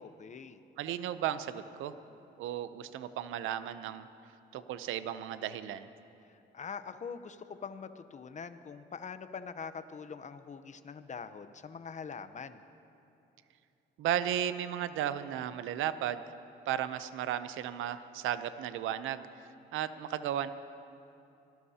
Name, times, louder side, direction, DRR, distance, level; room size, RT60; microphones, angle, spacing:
voice 1, 0.0-0.6 6.3-12.6, left 6 dB, 35° left, 11 dB, 0.8 m, -44 dB
voice 2, 0.8-2.0 2.4-4.1 4.5-5.9 14.0-16.2 16.7-19.3 19.7-20.5, right 11 dB, 85° right, 12 dB, 0.7 m, -34 dB
25.0 x 17.5 x 2.9 m, 2.8 s
cardioid pair, 90°, 20 cm